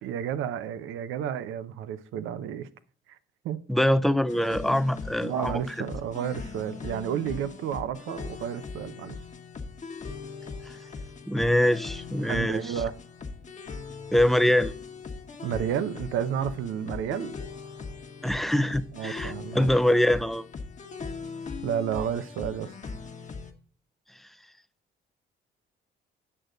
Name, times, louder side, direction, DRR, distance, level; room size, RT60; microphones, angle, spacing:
voice 1, 0.0-2.7 3.1-3.2 3.4-3.7 5.2-9.2 12.2-12.9 15.4-17.4 18.9-19.7 21.6-22.7, right 9 dB, 90° right, 0.7 m, -31 dB
voice 2, 3.7-5.6 10.6-10.7 11.3-12.7 14.1-14.7 18.2-20.4, left 1 dB, ahead, 0.4 m, -24 dB
sound 1, 4.3-23.5, left 4 dB, 40° left, 1.1 m, -40 dB
8.6 x 6.5 x 3.8 m
cardioid pair, 90°, 20 cm